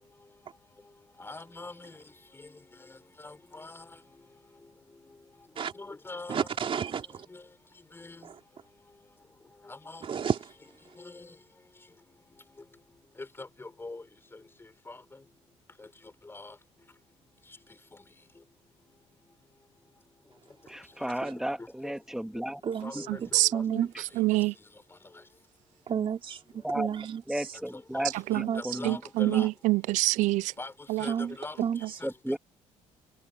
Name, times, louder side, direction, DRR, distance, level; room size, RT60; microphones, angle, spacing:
voice 1, 1.2-1.7 3.2-3.8 5.8-6.4 8.0-8.1 9.9-10.0 13.4-14.0 14.9-15.0 16.3-16.5 22.8-23.2 23.5-23.6 27.9-28.1 28.5-29.5 30.6-30.7 31.0-31.6, left 3 dB, 20° left, 6.0 m, -41 dB
voice 2, 6.3-7.1 10.1-10.4 21.2-21.3 22.6-22.9 23.5-23.9 25.9-26.4 26.7-27.2 28.5-28.6 29.3-29.5 31.1-31.3 31.6-31.8, right 7 dB, 45° right, 3.6 m, -30 dB
voice 3, 20.7-22.6 26.6-26.9 27.3-28.1 28.6-28.8 32.0-32.4, right 1 dB, 5° right, 2.3 m, -33 dB
voice 4, 23.3-23.8 24.2-24.5 28.3-28.5 28.9-30.5 30.9-31.0, right 19 dB, 75° right, 0.5 m, -25 dB
cardioid pair, 90°, 13 cm